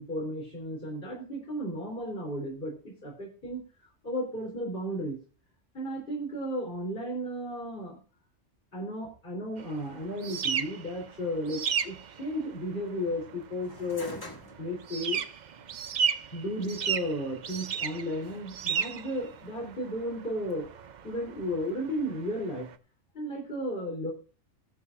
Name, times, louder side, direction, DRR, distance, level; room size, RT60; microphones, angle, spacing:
voice 1, 0.0-3.6 4.0-5.2 5.7-8.0 8.7-14.2 14.6-15.2 16.3-20.7 21.0-22.7 23.1-24.1, equal, 45° left, -2 dB, 3.5 m, -34 dB
sound 1, 9.6-22.7, right 7 dB, 50° right, 0.6 m, -35 dB
sound 2, 13.6-22.8, left 1 dB, 20° left, 1.7 m, -51 dB
20.0 x 7.1 x 2.5 m, 0.36 s
omnidirectional pair, 1.3 m